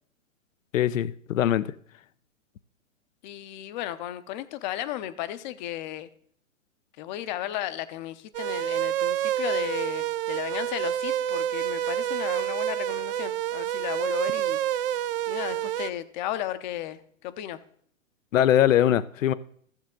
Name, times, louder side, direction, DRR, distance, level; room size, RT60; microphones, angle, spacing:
voice 1, 0.7-1.7 18.3-19.3, left 11 dB, 70° left, 0.6 m, -21 dB
voice 2, 3.2-6.1 7.0-14.6 15.3-17.6, left 13 dB, 35° left, 0.7 m, -34 dB
sound 1, 8.3-15.9, right 11 dB, 45° right, 0.5 m, -28 dB
14.5 x 7.4 x 3.7 m
hypercardioid pair, 125°, 40 cm